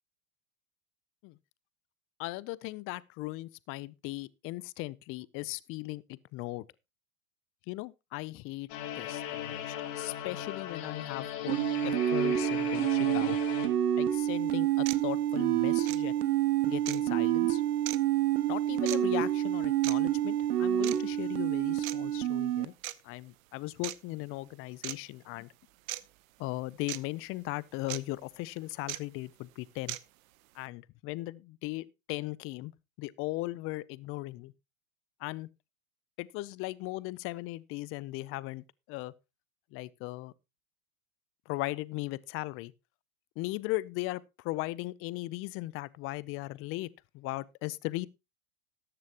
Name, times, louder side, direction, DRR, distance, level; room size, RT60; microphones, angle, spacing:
voice 1, 2.2-6.6 7.7-8.7 9.0-13.4 14.0-16.1 16.7-17.6 18.5-22.7 23.0-25.5 26.4-30.0 30.5-32.7 33.0-34.5 35.2-35.5 36.2-39.1 39.7-40.3 41.5-42.7 43.4-46.9 47.1-48.1, left 20 dB, 30° left, 0.5 m, -38 dB
sound 1, 8.7-13.7, left 11 dB, 55° left, 2.6 m, -38 dB
sound 2, 11.5-22.7, right 12 dB, 85° right, 1.2 m, -28 dB
sound 3, 14.1-14.2 14.9-15.0 15.8-16.0 16.9-17.0 17.9-18.0 18.9-19.0 19.8-20.0 20.8-21.0 21.8-22.0 22.8-22.9 23.8-24.0 24.8-25.0 25.9-26.0 26.9-27.0 27.9-28.0 28.9-29.0 29.9-30.0, right 17 dB, 65° right, 0.9 m, -37 dB
13.5 x 10.5 x 2.9 m
hypercardioid pair, 120°, 45 cm